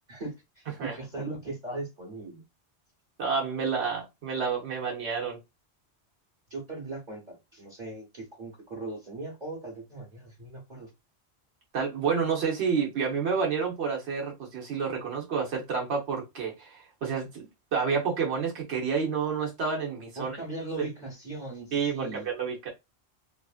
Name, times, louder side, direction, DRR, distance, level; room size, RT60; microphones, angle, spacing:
voice 1, 0.1-2.4 6.5-10.9 20.2-22.3, right 2 dB, 45° right, 1.0 m, -39 dB
voice 2, 3.2-5.4 11.7-20.4 21.7-22.7, right 5 dB, 80° right, 1.2 m, -29 dB
3.1 x 2.5 x 2.4 m
omnidirectional pair, 1.1 m